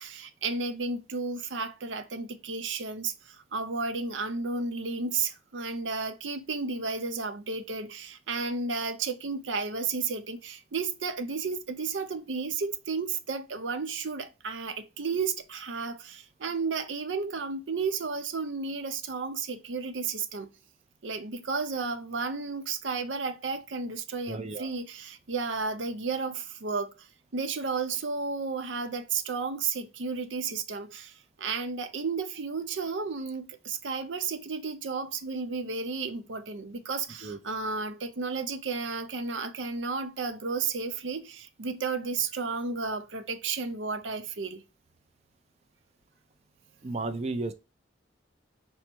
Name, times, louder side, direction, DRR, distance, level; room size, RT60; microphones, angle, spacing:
voice 1, 0.0-20.5 21.0-27.1 27.3-44.6, right 4 dB, 90° right, 0.6 m, -33 dB
voice 2, 24.3-24.7 37.2-37.4 46.8-47.5, right 3 dB, 35° right, 0.5 m, -33 dB
5.4 x 2.1 x 4.5 m
head